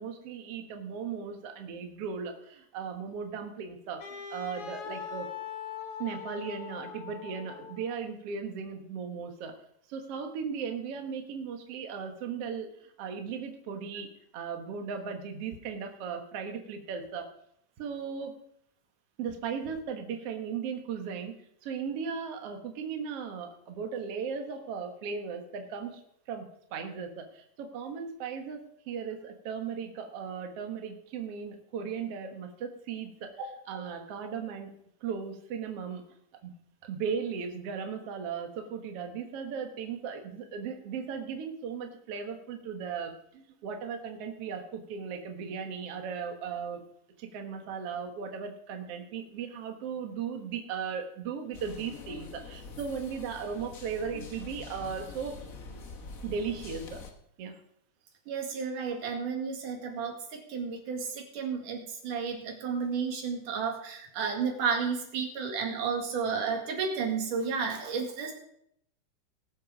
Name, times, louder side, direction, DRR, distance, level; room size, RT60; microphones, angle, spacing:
voice 1, 0.0-5.3 6.0-9.5 9.9-14.1 14.3-17.3 17.8-18.3 19.2-21.3 21.6-26.0 26.3-33.3 33.7-34.7 35.0-36.0 36.4-36.5 36.8-46.8 47.2-55.4 56.2-57.1 57.4-57.6, right 6 dB, 55° right, 4 dB, 2.2 m, -37 dB
Wind instrument woodwind instrument, 4.0-8.1, left 7 dB, 55° left, 2.1 m, -41 dB
sound 1, 51.5-57.1, left 4 dB, 80° left, 0.7 m, -45 dB
voice 2, 58.3-68.3, right 5 dB, 90° right, 2 dB, 3.7 m, -32 dB
19.0 x 7.6 x 5.2 m, 0.71 s
omnidirectional pair, 3.5 m